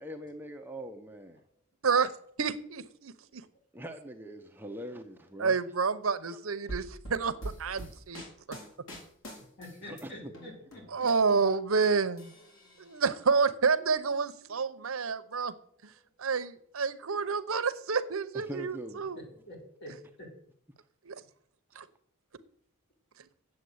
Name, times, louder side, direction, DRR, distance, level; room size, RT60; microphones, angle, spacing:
voice 1, 0.0-1.4 3.7-5.6 6.3-6.4 8.5-8.7 9.8-10.3 18.3-19.0, right 1 dB, 10° right, 4 dB, 0.7 m, -43 dB
voice 2, 2.4-3.4 5.4-8.2 8.5-8.6 10.9-12.3 12.8-15.5 15.8-15.9 16.2-19.2 21.0-21.2 21.7-21.9, right 5 dB, 70° right, 12 dB, 0.8 m, -29 dB
sound 1, 6.7-10.0 10.3-11.9 12.2-13.1, right 1 dB, 65° left, 4.2 m, -43 dB
voice 3, 9.6-11.4 11.9-12.8 14.4-14.8 16.0-16.1 16.9-17.0 17.4-17.5 19.1-19.9 20.2-20.3, left 1 dB, 50° left, -1 dB, 4.7 m, -50 dB
9.8 x 7.7 x 7.9 m, 0.64 s
head